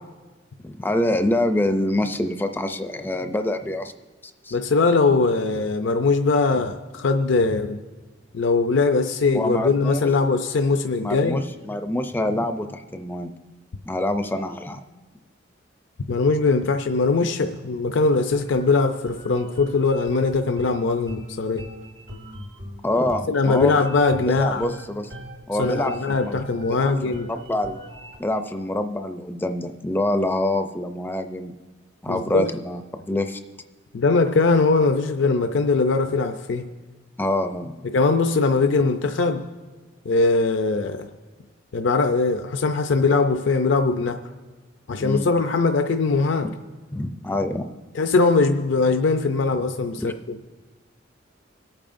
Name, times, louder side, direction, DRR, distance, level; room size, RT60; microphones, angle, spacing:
voice 1, 0.6-3.9 4.4-4.6 9.3-10.1 11.0-13.3 13.9-14.8 22.8-23.8 24.3-25.1 25.5-25.9 26.2-26.4 26.7-26.8 27.3-27.8 28.2-31.5 32.0-33.4 37.2-37.9 45.0-45.3 46.9-47.7 50.0-50.1, left 1 dB, 10° left, 7 dB, 0.4 m, -25 dB
voice 2, 4.5-7.8 8.3-11.4 16.1-21.7 23.3-24.6 25.6-27.3 32.1-32.5 33.9-36.7 37.8-39.5 40.1-41.1 41.7-44.2 44.9-46.5 47.9-50.2, left 3 dB, 70° left, 7 dB, 0.5 m, -21 dB
sound 1, 18.3-28.2, equal, 65° right, 1.7 m, -40 dB
26.0 x 8.7 x 2.6 m, 1.3 s
head